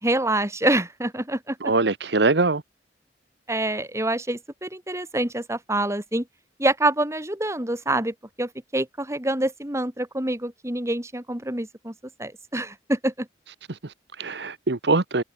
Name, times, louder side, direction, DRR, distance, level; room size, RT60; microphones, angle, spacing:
voice 1, 0.0-1.6 3.5-6.2 6.6-11.9 12.2-13.3, right 1 dB, 15° right, 2.9 m, -26 dB
voice 2, 1.6-2.6 13.7-15.2, right 3 dB, 70° right, 1.2 m, -23 dB
head